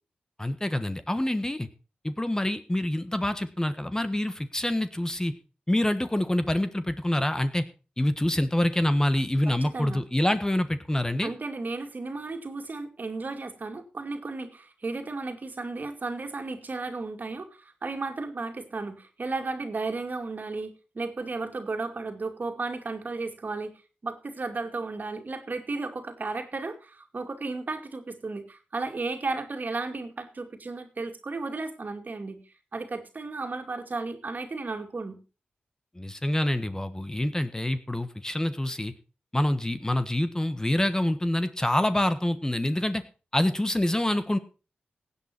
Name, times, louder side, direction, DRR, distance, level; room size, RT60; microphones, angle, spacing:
voice 1, 0.4-1.7 2.0-5.3 5.7-7.6 8.0-11.3 36.0-38.9 39.3-43.0 43.3-44.4, left 1 dB, 15° left, 11 dB, 1.4 m, -26 dB
voice 2, 9.5-10.0 11.2-23.8 24.0-32.4 32.7-35.2, right 3 dB, 50° right, 6 dB, 2.4 m, -34 dB
16.5 x 8.7 x 4.4 m, 0.33 s
cardioid pair, 45°, 4 cm